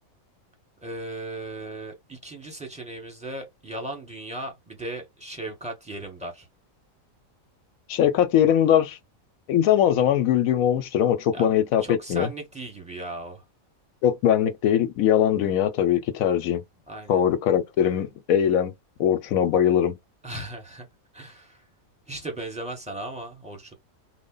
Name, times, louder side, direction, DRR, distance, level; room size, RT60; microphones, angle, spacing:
voice 1, 0.8-6.5 11.3-13.4 16.9-17.2 20.2-20.9 21.1-21.7 22.1-23.7, right 1 dB, 5° right, 1.0 m, -37 dB
voice 2, 7.9-9.0 9.5-12.3 14.0-16.6 17.1-18.7 19.0-20.0, left 10 dB, 85° left, 1.1 m, -21 dB
3.2 x 2.1 x 3.7 m
omnidirectional pair, 1.4 m